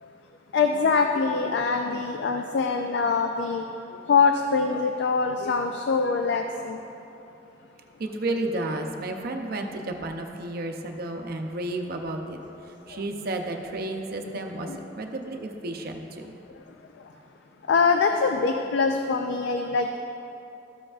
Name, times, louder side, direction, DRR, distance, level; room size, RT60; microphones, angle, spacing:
voice 1, 0.5-3.6 4.1-6.8 12.9-13.0 14.6-14.8 17.7-20.0, left 4 dB, 70° left, 5 dB, 0.4 m, -24 dB
voice 2, 8.0-16.4, right 2 dB, 55° right, 4 dB, 0.6 m, -32 dB
13.0 x 7.7 x 2.4 m, 2.9 s
head